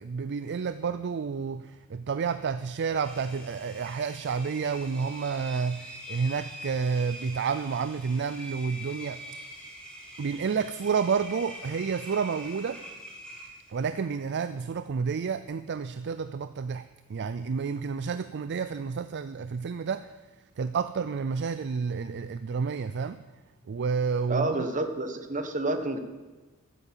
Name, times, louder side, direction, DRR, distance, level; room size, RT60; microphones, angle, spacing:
voice 1, 0.0-9.2 10.2-12.8 13.7-16.8 17.1-20.0 20.6-23.2 23.7-24.6, right 5 dB, 50° right, 12 dB, 0.4 m, -30 dB
Engine, 3.0-13.9, equal, 5° left, 2.7 m, -44 dB
voice 2, 24.3-26.0, right 2 dB, 35° right, 7 dB, 1.2 m, -29 dB
13.0 x 8.3 x 7.5 m, 1.2 s
head